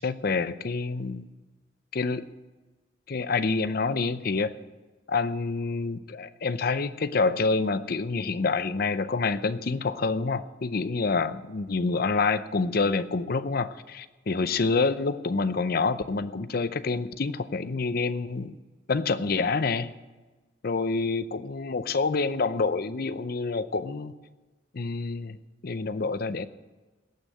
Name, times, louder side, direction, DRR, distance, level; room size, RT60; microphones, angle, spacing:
voice 1, 0.0-1.3 1.9-2.3 3.1-4.6 5.1-18.6 18.9-19.9 20.6-24.1 24.7-25.4 25.6-26.5, left 4 dB, 50° left, 13 dB, 0.6 m, -27 dB
18.0 x 6.4 x 7.8 m, 1.2 s
head